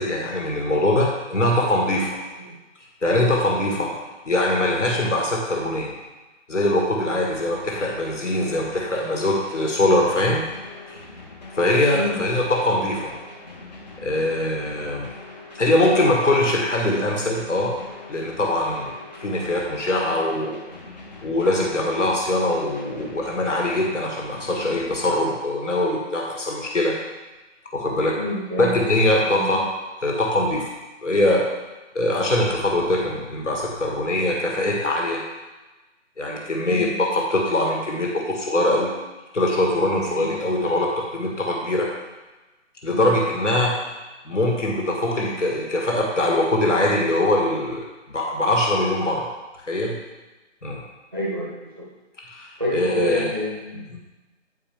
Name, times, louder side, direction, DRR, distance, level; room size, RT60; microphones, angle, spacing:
voice 1, 0.0-2.1 3.0-3.9 4.3-5.9 6.5-10.4 11.6-13.1 14.0-15.1 15.6-17.7 18.1-18.9 19.2-20.6 21.2-26.9 27.7-28.2 28.6-29.7 30.0-30.7 31.0-31.4 31.9-35.2 36.2-38.9 39.3-41.9 42.8-43.8 44.3-49.3 49.7-50.0 50.6-50.8 52.3-53.3 53.9-54.0, left 1 dB, 70° left, -1 dB, 1.7 m, -22 dB
sound 1, 7.3-25.3, left 2 dB, 35° left, 1.1 m, -42 dB
voice 2, 28.2-28.7 29.3-29.6 36.7-36.9 40.0-40.3 42.9-43.1 51.1-51.9 52.6-53.9, equal, 20° right, -5 dB, 0.7 m, -28 dB
9.1 x 4.6 x 3.5 m, 1.1 s
figure-of-eight pair, 160°, 37 cm